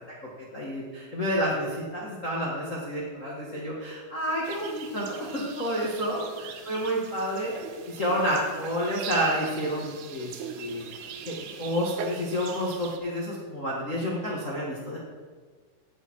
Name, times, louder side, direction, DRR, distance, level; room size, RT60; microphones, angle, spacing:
voice 1, 0.4-7.5 7.9-10.8 11.2-15.0, equal, 60° left, -5 dB, 0.7 m, -30 dB
sound 1, 4.4-13.0, right 6 dB, 75° right, 2.8 m, -40 dB
17.0 x 6.5 x 4.7 m, 1.5 s
omnidirectional pair, 4.7 m